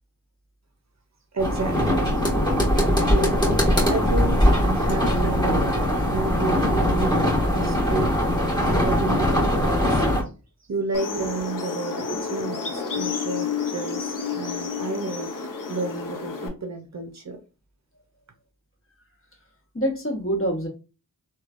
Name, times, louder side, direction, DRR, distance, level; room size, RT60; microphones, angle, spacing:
voice 1, 1.3-2.2 2.9-8.1 8.8-10.0 10.7-17.4, right 3 dB, 50° right, 6 dB, 0.6 m, -31 dB
sound 1, 1.4-10.2, equal, 10° left, 1.2 m, -21 dB
sound 2, 10.9-16.5, left 5 dB, 60° left, 0.7 m, -30 dB
voice 2, 19.7-20.7, right 1 dB, 35° left, 0 dB, 1.2 m, -27 dB
3.1 x 2.3 x 2.4 m, 0.32 s
cardioid pair, 45°, 37 cm